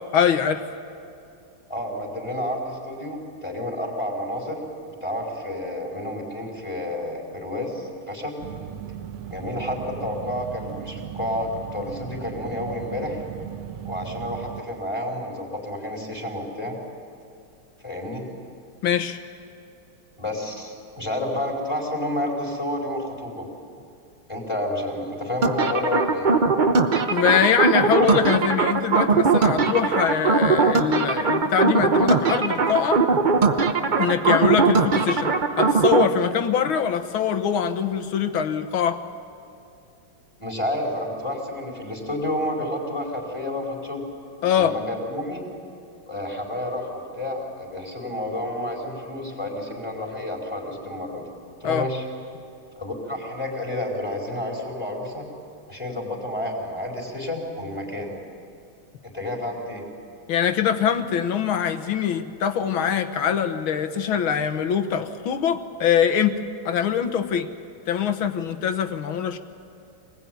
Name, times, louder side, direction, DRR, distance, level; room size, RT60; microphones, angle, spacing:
voice 1, 0.1-0.6 18.8-19.2 27.1-33.0 34.0-39.0 44.4-44.7 51.6-51.9 60.3-66.4 66.7-67.5 67.9-69.4, left 8 dB, 75° left, 8 dB, 2.0 m, -23 dB
voice 2, 1.7-8.4 9.3-13.2 13.8-16.8 17.8-18.3 20.2-23.5 24.3-26.3 40.4-44.1 44.6-45.4 46.1-51.2 51.6-52.0 52.8-55.3 55.7-58.1 59.0-59.8, left 1 dB, 10° left, -2 dB, 4.5 m, -30 dB
sound 1, 8.4-14.6, right 10 dB, 85° right, 1.7 m, -37 dB
sound 2, 25.4-36.1, right 4 dB, 45° right, 0.6 m, -20 dB
25.5 x 20.0 x 9.4 m, 2.5 s
omnidirectional pair, 2.3 m